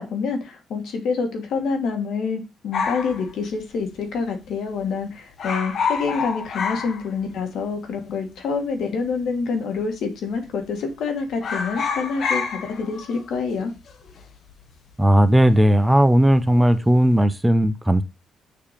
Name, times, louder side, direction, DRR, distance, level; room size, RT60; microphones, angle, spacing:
voice 1, 0.0-13.7, left 5 dB, 75° left, 1.5 m, -27 dB
sound 1, 2.7-4.2 4.5-4.6 4.8-5.1 5.3-7.6 7.9-8.0 8.8-9.4 9.8-10.0 10.3-11.0 11.3-15.9 16.2-16.7, left 5 dB, 60° left, 0.9 m, -29 dB
voice 2, 15.0-18.0, right 1 dB, 10° right, 0.5 m, -16 dB
6.8 x 2.8 x 5.0 m
cardioid pair, 90°, 0 cm